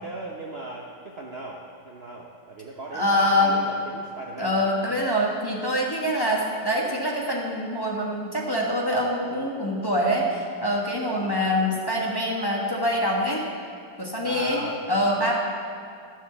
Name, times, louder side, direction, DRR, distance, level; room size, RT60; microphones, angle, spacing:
voice 1, 0.0-4.7 11.1-11.4 14.2-14.8, right 2 dB, 75° right, -1 dB, 0.5 m, -37 dB
voice 2, 2.9-3.5 4.4-13.4 14.0-14.6 14.9-15.3, equal, 15° left, -3 dB, 1.0 m, -25 dB
13.0 x 6.6 x 6.8 m, 2.4 s
omnidirectional pair, 2.3 m